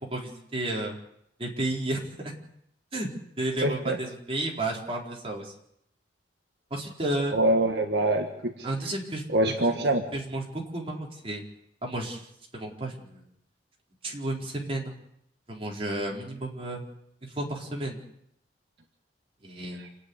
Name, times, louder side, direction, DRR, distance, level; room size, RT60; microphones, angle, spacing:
voice 1, 0.0-1.0 1.4-2.3 2.9-3.1 3.4-5.5 6.7-7.3 8.6-9.3 9.7-9.8 10.1-11.4 11.8-12.2 12.5-13.3 14.0-15.0 15.5-16.8 17.2-18.0 19.4-19.8, right 1 dB, 35° right, -1 dB, 4.3 m, -32 dB
voice 2, 3.6-4.0 7.3-8.5 9.3-10.0, right 1 dB, 65° right, 3 dB, 1.7 m, -24 dB
28.0 x 9.7 x 9.9 m, 0.76 s
head